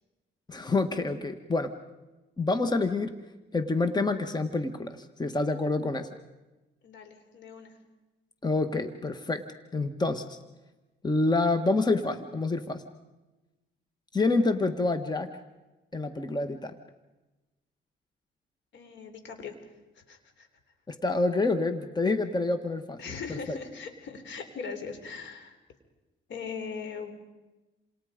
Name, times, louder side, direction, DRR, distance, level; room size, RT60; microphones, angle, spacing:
voice 1, 0.5-1.7 2.4-3.1 3.5-6.1 8.4-9.4 9.7-10.4 11.0-12.8 14.1-15.3 15.9-16.7 20.9-23.0 23.3-23.6, left 3 dB, 20° left, 8 dB, 1.5 m, -27 dB
voice 2, 6.8-7.8 18.7-19.6 20.0-20.5 23.0-25.5 26.3-27.1, left 5 dB, 70° left, 7 dB, 3.8 m, -40 dB
28.5 x 27.0 x 5.2 m, 1.1 s
cardioid pair, 90°, 20 cm